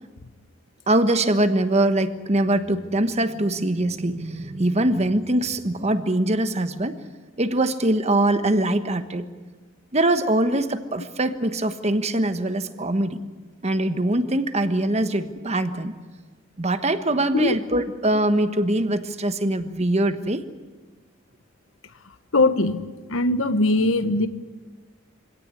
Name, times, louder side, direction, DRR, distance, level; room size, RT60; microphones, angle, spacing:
voice 1, 0.9-7.0 7.4-9.3 9.9-13.2 13.6-15.9 16.6-20.4, right 1 dB, 35° right, 10 dB, 1.2 m, -23 dB
voice 2, 22.3-22.8 23.1-24.3, left 2 dB, 85° left, 11 dB, 1.3 m, -20 dB
24.5 x 17.5 x 9.8 m, 1.3 s
head